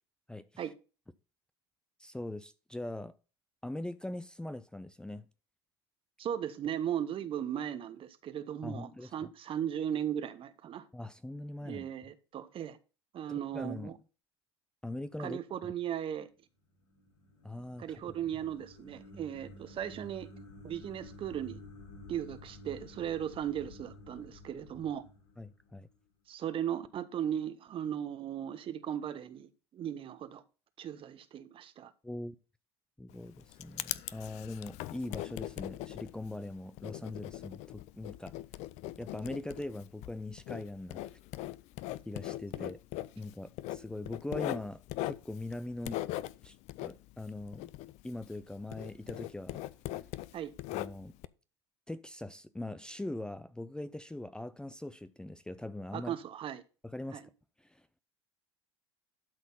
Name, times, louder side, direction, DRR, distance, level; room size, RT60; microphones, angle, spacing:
voice 1, 0.3-0.6 2.0-3.2 3.6-5.3 8.6-9.3 10.9-11.9 13.3-14.0 14.8-15.4 17.4-18.0 25.4-25.9 32.0-32.4 33.0-38.3 39.0-41.2 42.1-42.8 43.2-46.0 46.4-46.6 46.8-47.7 48.0-49.6 50.7-51.1 51.9-56.1 56.8-57.2 57.6-57.9, left 1 dB, 5° left, 0.5 m, -41 dB
voice 2, 6.2-10.9 11.6-12.8 13.1-14.0 15.2-16.3 17.8-20.3 20.6-21.6 22.1-25.0 26.3-30.4 30.8-31.9 50.3-50.5 55.9-56.6 57.1-57.2, right 10 dB, 40° right, 1.0 m, -37 dB
sound 1, 16.7-26.0, left 2 dB, 70° left, 5.0 m, -52 dB
Writing, 33.1-48.4 48.7-51.3, left 15 dB, 55° left, 0.5 m, -40 dB
12.0 x 4.1 x 5.5 m
hypercardioid pair, 75°, 14 cm